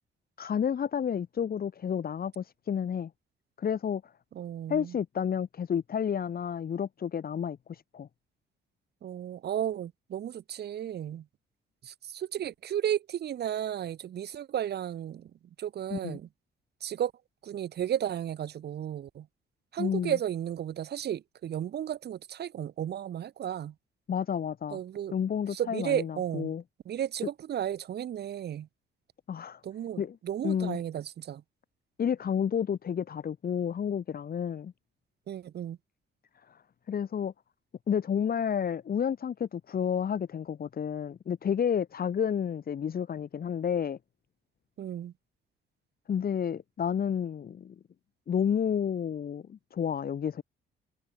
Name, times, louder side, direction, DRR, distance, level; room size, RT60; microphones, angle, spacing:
voice 1, 0.4-3.1 3.6-4.1 4.7-8.1 15.9-16.2 19.8-20.2 24.1-24.8 25.1-26.6 29.3-29.6 30.0-30.2 30.4-30.8 32.0-34.7 36.5-36.6 36.9-37.3 37.9-44.0 46.1-47.7 48.3-50.4, left 8 dB, 50° left, 1.7 m, -30 dB
voice 2, 4.3-5.0 9.0-11.2 11.8-15.3 15.6-16.3 16.8-17.1 17.4-19.3 19.7-23.7 24.7-25.1 25.5-26.5 26.9-28.7 29.6-31.4 35.3-35.8 44.8-45.1, right 10 dB, 55° right, 0.9 m, -34 dB
cardioid pair, 90°, 20 cm